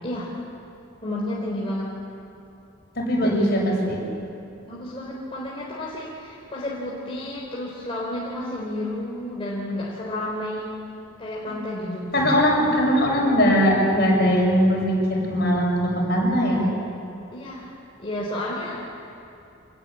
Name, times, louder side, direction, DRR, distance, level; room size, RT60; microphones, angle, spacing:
voice 1, 1.0-1.9 3.1-3.6 4.7-10.7 11.2-12.7 17.3-17.7 18.0-18.8, left 1 dB, 25° left, -5 dB, 3.9 m, -31 dB
voice 2, 3.0-4.0 12.1-16.6, equal, 50° left, -2 dB, 7.2 m, -20 dB
26.0 x 21.0 x 8.7 m, 2.7 s
head